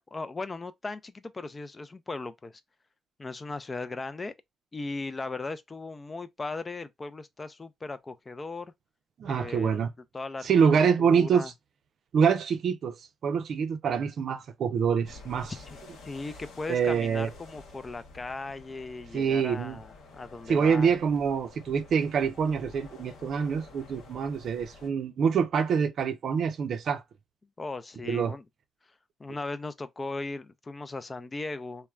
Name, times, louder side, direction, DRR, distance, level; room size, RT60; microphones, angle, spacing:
voice 1, 0.1-2.6 3.2-4.3 4.7-8.7 9.3-9.8 10.1-10.5 11.0-11.5 15.7-15.8 16.0-20.9 27.6-28.4 29.2-31.9, left 3 dB, 25° left, 0.3 m, -37 dB
voice 2, 9.2-9.9 10.4-11.5 12.1-13.0 13.2-15.5 16.7-17.3 19.1-19.8 20.5-27.0 28.1-28.4, right 6 dB, 60° right, 0.5 m, -25 dB
sound 1, 15.0-24.9, left 3 dB, 80° left, 0.9 m, -50 dB
3.2 x 2.1 x 2.3 m
cardioid pair, 90°, 0 cm